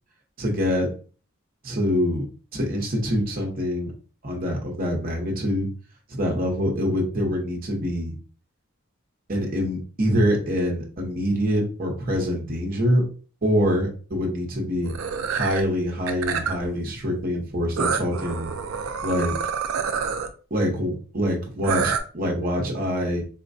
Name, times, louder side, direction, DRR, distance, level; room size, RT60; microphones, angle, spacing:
voice 1, 0.4-0.9 1.6-2.2 2.5-3.9 4.2-5.7 6.1-8.1 9.3-13.0 13.4-14.9 15.3-18.5 19.0-19.3 20.5-23.2, equal, 45° right, 0 dB, 0.9 m, -25 dB
sound 1, 14.8-15.6 16.1-16.7 17.8-20.3 21.6-22.0, right 6 dB, 85° right, 0.4 m, -27 dB
4.3 x 2.2 x 2.6 m, 0.39 s
head